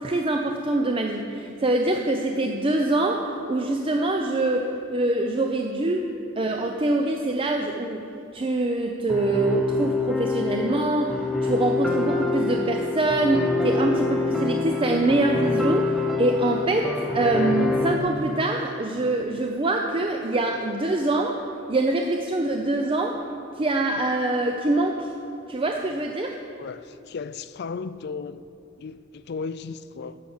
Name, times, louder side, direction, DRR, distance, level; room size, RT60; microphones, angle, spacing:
voice 1, 0.0-6.1 6.4-8.0 8.3-11.1 11.4-16.9 17.1-21.4 21.7-23.2 23.6-25.1 25.5-26.4, right 2 dB, 25° right, 3 dB, 0.5 m, -24 dB
sound 1, 9.1-18.0, left 3 dB, ahead, 0.8 m, -26 dB
voice 2, 26.6-28.4 28.8-30.2, left 5 dB, 55° left, 13 dB, 0.4 m, -35 dB
11.5 x 6.5 x 7.1 m, 2.7 s
head